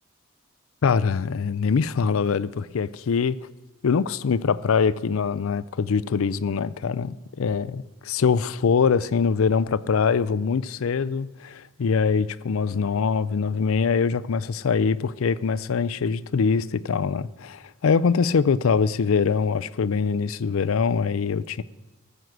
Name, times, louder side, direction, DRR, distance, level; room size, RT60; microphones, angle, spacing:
voice 1, 0.8-3.4 3.8-21.6, left 5 dB, 80° left, 0.4 m, -23 dB
14.0 x 8.0 x 6.0 m
head